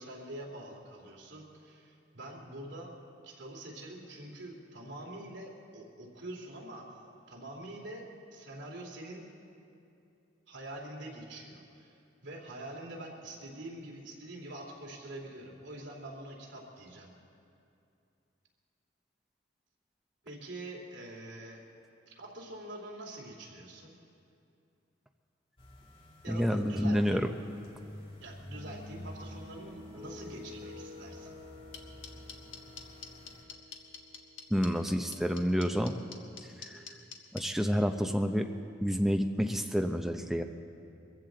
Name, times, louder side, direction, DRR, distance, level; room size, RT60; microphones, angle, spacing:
voice 1, 0.0-3.0 3.2-6.9 7.3-9.2 10.5-11.9 12.2-17.1 20.2-21.6 22.1-23.9 26.2-27.3 28.2-31.3, right 1 dB, 70° right, -2 dB, 2.6 m, -45 dB
sound 1, 25.6-33.4, left 1 dB, 30° left, 1.4 m, -50 dB
voice 2, 26.3-27.3 34.5-36.0 36.6-37.0 37.3-38.5 38.8-40.4, equal, ahead, 5 dB, 0.6 m, -29 dB
sound 2, 28.5-35.1, left 2 dB, 20° right, 4.5 m, -51 dB
sound 3, 31.7-37.4, left 7 dB, 80° left, 1.3 m, -44 dB
22.5 x 15.0 x 3.9 m, 2.6 s
head